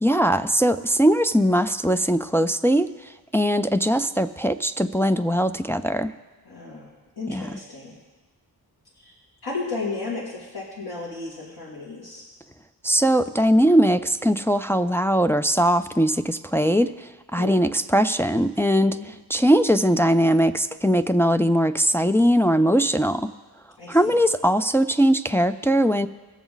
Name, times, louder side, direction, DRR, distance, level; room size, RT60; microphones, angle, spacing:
voice 1, 0.0-6.1 7.3-7.6 12.8-23.3 23.9-26.1, equal, 5° left, 8 dB, 0.3 m, -20 dB
voice 2, 6.5-6.9 7.2-7.9 9.0-9.1 9.4-12.2 17.4-17.6 18.9-19.1 23.8-24.2, left 3 dB, 70° left, -6 dB, 2.6 m, -33 dB
21.0 x 7.1 x 3.9 m, 1.3 s
cardioid pair, 80°, 40 cm